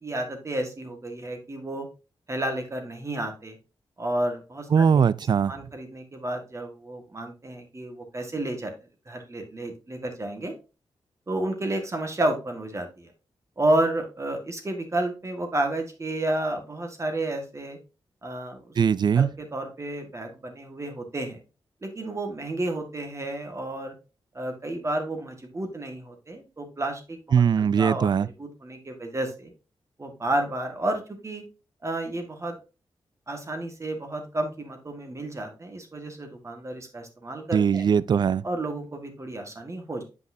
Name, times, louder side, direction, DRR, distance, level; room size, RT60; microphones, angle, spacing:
voice 1, 0.0-1.9 2.3-3.6 4.0-5.1 5.5-8.7 9.1-10.5 11.3-13.1 13.6-17.8 18.2-18.6 19.1-21.4 21.8-23.9 24.3-28.1 28.4-29.5 30.0-31.4 31.8-32.5 33.3-37.8 38.4-40.0, right 1 dB, 30° right, 1.6 m, -31 dB
voice 2, 4.7-5.5 18.8-19.3 27.3-28.3 37.5-38.4, right 7 dB, 50° right, 0.3 m, -20 dB
8.2 x 5.3 x 2.7 m
cardioid pair, 75°, 10 cm